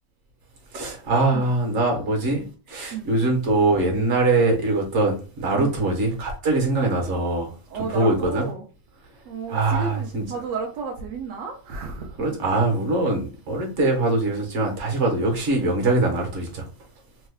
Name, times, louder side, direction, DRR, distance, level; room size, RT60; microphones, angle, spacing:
voice 1, 0.7-7.5 7.9-8.5 9.5-10.2 12.2-16.7, right 2 dB, 50° right, 1.1 m, -22 dB
voice 2, 7.7-8.6 9.3-12.4, right 5 dB, 70° right, 0.7 m, -33 dB
3.1 x 2.2 x 3.4 m
omnidirectional pair, 1.7 m